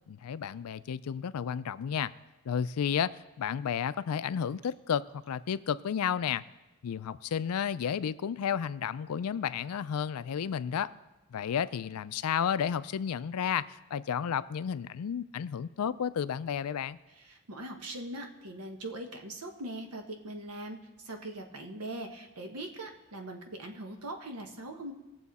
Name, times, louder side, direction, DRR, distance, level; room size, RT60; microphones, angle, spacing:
voice 1, 0.1-2.1 2.5-3.1 3.4-6.4 6.8-10.9 11.3-17.0, left 8 dB, 75° left, 16 dB, 0.4 m, -32 dB
voice 2, 17.2-20.8 21.0-24.9, right 1 dB, 85° right, 4 dB, 1.3 m, -41 dB
19.0 x 7.0 x 4.2 m, 1.0 s
head